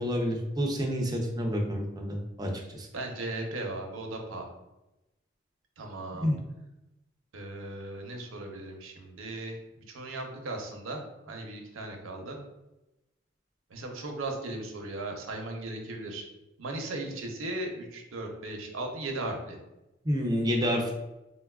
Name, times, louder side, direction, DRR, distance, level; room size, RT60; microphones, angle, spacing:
voice 1, 0.0-2.9 6.2-6.4 20.0-20.9, equal, 20° right, 0 dB, 0.4 m, -29 dB
voice 2, 2.9-4.5 5.8-6.3 7.3-9.6 9.9-12.4 13.7-16.3 16.6-19.6, right 2 dB, 80° right, 2 dB, 0.6 m, -37 dB
3.9 x 2.2 x 2.2 m, 0.96 s
head